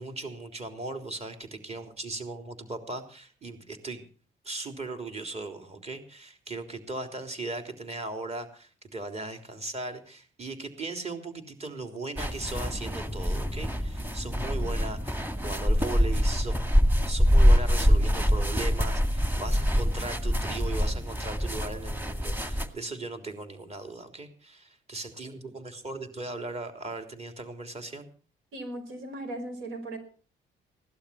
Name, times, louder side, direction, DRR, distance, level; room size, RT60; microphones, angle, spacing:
voice 1, 0.0-4.0 4.4-16.6 17.1-28.1, right 2 dB, 35° right, 7 dB, 3.6 m, -38 dB
sound 1, 12.2-22.7, equal, 10° right, 2.2 m, -25 dB
voice 2, 28.5-30.0, right 1 dB, 85° right, 7 dB, 4.9 m, -37 dB
16.5 x 12.0 x 5.9 m, 0.40 s
cardioid pair, 90°, 20 cm